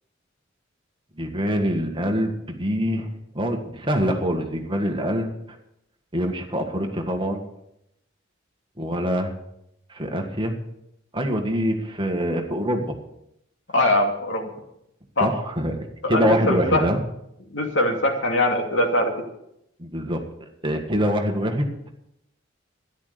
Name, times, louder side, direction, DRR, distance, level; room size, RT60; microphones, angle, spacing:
voice 1, 1.2-5.3 6.1-7.4 8.8-9.3 9.9-10.6 11.1-12.9 15.2-15.8 16.1-17.0 19.8-20.2 20.6-21.7, equal, 25° right, 3 dB, 1.7 m, -24 dB
voice 2, 13.7-14.5 15.2-15.3 16.0-16.9 17.5-19.1, left 1 dB, 65° left, 2 dB, 2.6 m, -22 dB
13.0 x 11.0 x 6.8 m, 0.80 s
head